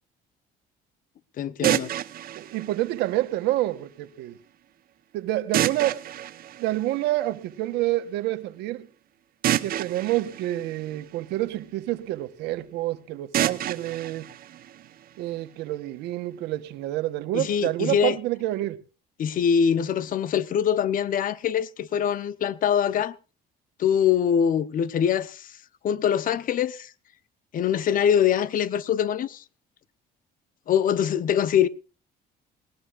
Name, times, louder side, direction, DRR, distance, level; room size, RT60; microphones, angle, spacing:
voice 1, 1.4-1.9 17.3-18.2 19.2-23.2 23.8-25.6 25.8-26.9 27.5-29.4 30.7-31.7, left 8 dB, 55° left, 0.9 m, -23 dB
sound 1, 1.6-3.7 5.5-7.5 9.4-11.6 13.3-15.4, right 12 dB, 60° right, 0.8 m, -30 dB
voice 2, 2.4-4.4 5.1-6.0 6.6-8.9 9.6-14.3 15.2-18.8, right 15 dB, 90° right, 1.2 m, -28 dB
19.5 x 18.5 x 2.5 m
cardioid pair, 110°, 17 cm